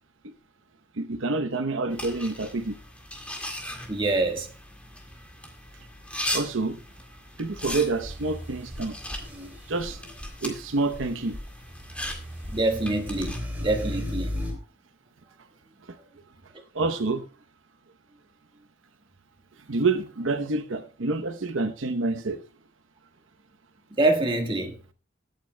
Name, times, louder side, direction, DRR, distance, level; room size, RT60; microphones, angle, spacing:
voice 1, 1.0-2.8 6.3-6.8 7.4-9.0 9.7-10.0 10.4-11.4 15.9-16.0 16.7-17.2 19.7-22.4, right 3 dB, 80° right, 0.8 m, -27 dB
sound 1, 1.9-13.4, left 1 dB, 5° left, 2.0 m, -39 dB
voice 2, 3.9-4.5 12.5-13.4 13.6-14.3 24.0-24.8, right 2 dB, 25° right, 1.5 m, -25 dB
sound 2, 7.5-10.5 10.9-14.5, left 1 dB, 10° right, 3.1 m, -36 dB
21.5 x 8.9 x 2.2 m
head